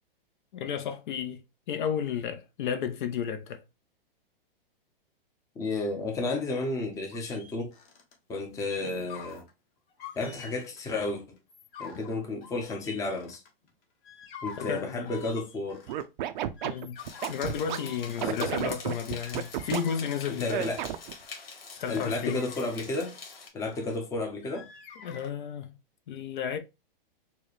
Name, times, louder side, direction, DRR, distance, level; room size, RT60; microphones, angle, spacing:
voice 1, 0.5-1.4 1.7-3.6 14.6-15.2 16.6-17.0 17.3-20.7 21.7-22.4 25.0-25.8 26.1-26.6, left 7 dB, 55° left, 0.6 m, -33 dB
voice 2, 5.6-7.7 8.3-9.4 10.2-11.4 11.8-13.4 14.4-15.9 18.2-18.5 20.3-20.8 21.9-23.2 23.5-24.7, left 2 dB, 10° left, 0.6 m, -32 dB
sound 1, 7.1-8.1 8.5-9.5 9.9-10.8 11.4-13.7 14.0-16.0 16.4-20.2 20.5-21.3 21.7-23.9 24.4-25.3, left 6 dB, 30° left, 1.0 m, -47 dB
Scratching (performance technique), 15.9-17.8 18.2-19.8 20.5-21.1, right 12 dB, 55° right, 0.5 m, -31 dB
sound 2, 17.0-23.5, left 4 dB, 70° left, 1.7 m, -45 dB
4.4 x 2.2 x 3.0 m
hypercardioid pair, 135°, 29 cm